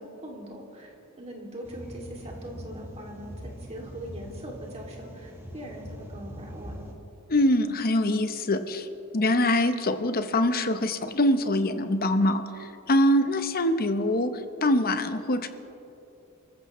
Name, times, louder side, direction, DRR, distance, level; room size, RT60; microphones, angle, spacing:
voice 1, 0.0-6.7, right 1 dB, 30° right, -1 dB, 2.5 m, -42 dB
sound 1, 1.6-6.9, equal, 10° right, 1.5 m, -42 dB
voice 2, 7.3-8.9 9.1-14.3 14.6-15.5, left 1 dB, 45° left, 9 dB, 0.8 m, -24 dB
30.0 x 14.5 x 3.1 m, 3.0 s
head